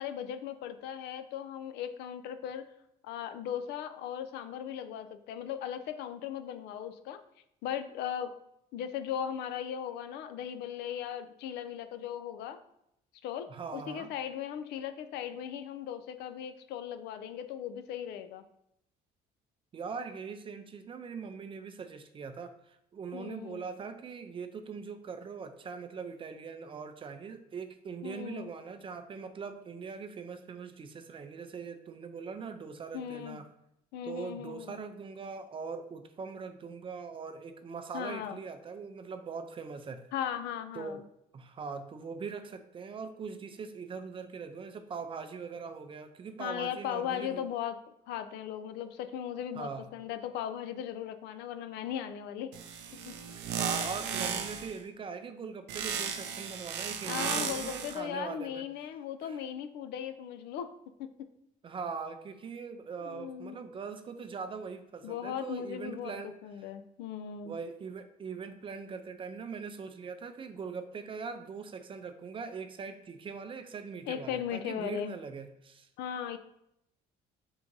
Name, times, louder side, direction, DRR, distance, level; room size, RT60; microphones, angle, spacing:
voice 1, 0.0-2.7 3.0-7.2 7.6-8.3 8.7-12.6 13.2-18.4 23.1-23.6 28.0-28.5 32.9-33.4 33.9-34.8 37.9-38.4 40.1-41.0 46.4-47.8 48.1-52.5 53.0-53.1 57.1-60.7 61.0-61.1 63.0-63.6 65.0-66.1 66.4-67.5 74.1-75.2 76.0-76.4, left 9 dB, 80° left, 10 dB, 0.4 m, -38 dB
voice 2, 13.5-14.1 19.7-33.5 34.0-40.1 40.7-41.0 41.3-47.4 49.5-49.9 53.3-58.6 59.2-59.4 61.6-66.7 67.4-75.9, right 5 dB, 30° right, 9 dB, 0.4 m, -41 dB
sound 1, 52.5-54.8 55.7-58.0, right 7 dB, 90° right, 0.5 m, -35 dB
3.7 x 2.6 x 4.5 m, 0.79 s
cardioid pair, 110°, 17 cm